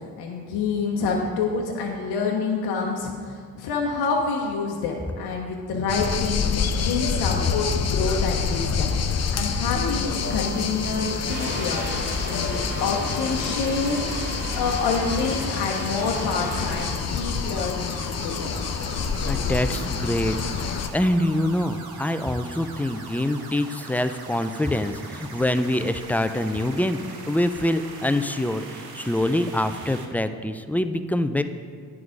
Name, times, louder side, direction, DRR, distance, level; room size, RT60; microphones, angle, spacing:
voice 1, 0.2-8.9 9.3-18.6, left 4 dB, 80° left, 0 dB, 0.8 m, -27 dB
sound 1, 5.9-20.9, left 5 dB, 45° left, 0.6 m, -27 dB
sound 2, 10.2-30.0, right 4 dB, 70° right, 1.1 m, -41 dB
sound 3, 11.3-16.9, right 1 dB, 90° right, 2.1 m, -34 dB
voice 2, 19.3-20.4 20.9-27.0 27.3-31.4, left 1 dB, 5° left, 9 dB, 0.4 m, -25 dB
9.5 x 4.8 x 5.0 m, 2.1 s
supercardioid pair, 65°, 38 cm